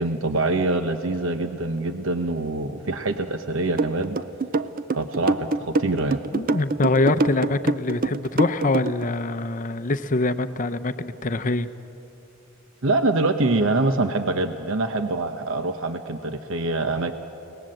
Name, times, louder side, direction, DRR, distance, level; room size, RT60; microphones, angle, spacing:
voice 1, 0.0-4.2 5.0-6.2 12.8-17.1, right 2 dB, 70° right, 7 dB, 0.9 m, -24 dB
sound 1, 3.8-9.0, right 3 dB, 45° right, 0.6 m, -24 dB
voice 2, 6.3-11.7, left 2 dB, 40° left, 11 dB, 0.7 m, -24 dB
30.0 x 18.5 x 7.8 m, 2.9 s
head